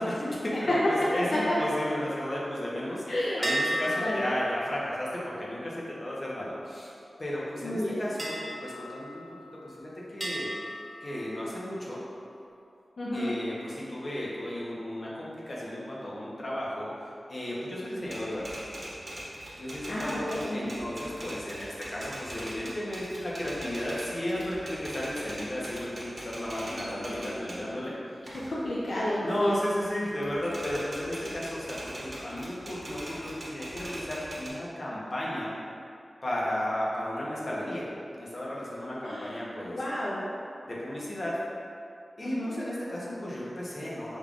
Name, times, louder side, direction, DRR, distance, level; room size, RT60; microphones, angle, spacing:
voice 1, 0.0-3.0 3.4-9.2 9.6-10.5 11.0-12.0 13.1-16.9 17.3-18.5 19.6-27.9 29.2-35.5 36.2-37.8 38.2-39.8 40.6-41.3 42.2-44.2, left 1 dB, 50° left, -6 dB, 1.0 m, -34 dB
voice 2, 3.1-3.4 4.0-4.3 7.6-8.0 13.0-13.3 19.9-20.8 28.3-29.5 39.1-39.4 39.7-40.2 42.2-42.6, left 1 dB, 75° left, -8 dB, 0.6 m, -31 dB
sound 1, 3.4-7.1 8.2-9.7 10.2-11.9, right 1 dB, 20° right, 0.7 m, -36 dB
Typewriter, 18.0-27.7 28.1-29.9 30.2-34.5, right 1 dB, 45° right, 1.0 m, -42 dB
5.4 x 3.7 x 2.4 m, 2.5 s
wide cardioid pair, 85°, 0 cm